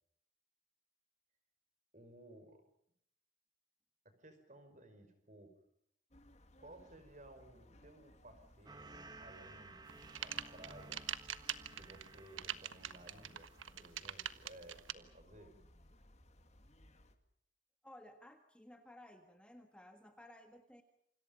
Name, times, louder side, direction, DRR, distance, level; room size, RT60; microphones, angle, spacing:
voice 1, 1.9-2.6 4.1-5.5 6.6-11.0 11.8-13.5 13.8-15.5, right 1 dB, 40° right, 8 dB, 5.3 m, -58 dB
sound 1, 6.1-17.2, left 1 dB, 35° left, 2.2 m, -64 dB
sound 2, 8.7-14.4 14.8-15.2, right 2 dB, 20° right, 1.7 m, -57 dB
sound 3, 9.9-14.9, right 10 dB, 85° right, 1.4 m, -43 dB
voice 2, 17.8-20.8, left 1 dB, 5° left, 5 dB, 1.6 m, -57 dB
28.5 x 26.5 x 5.3 m, 0.70 s
head